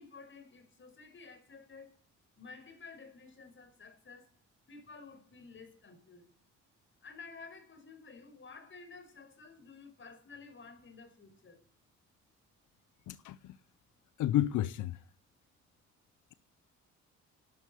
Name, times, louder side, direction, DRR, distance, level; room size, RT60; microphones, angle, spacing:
voice 1, 0.0-2.0 2.4-4.3 4.7-6.3 7.0-11.6, left 4 dB, 40° left, 5.7 m, -52 dB
voice 2, 13.1-13.6 14.2-15.0, left 12 dB, 85° left, 0.8 m, -31 dB
12.5 x 11.5 x 7.7 m
cardioid pair, 90°, 30 cm